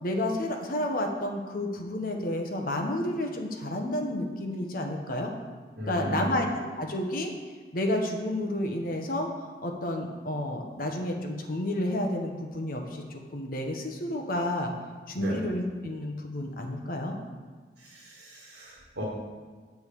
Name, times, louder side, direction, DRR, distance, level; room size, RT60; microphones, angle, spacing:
voice 1, 0.0-5.3 5.9-7.3 7.7-9.3 9.6-14.7 15.1-17.2, left 1 dB, 55° left, 2 dB, 1.1 m, -30 dB
voice 2, 5.8-6.4 15.2-15.4 17.8-19.0, right 1 dB, 90° right, -6 dB, 1.9 m, -36 dB
8.0 x 4.7 x 6.9 m, 1.5 s
head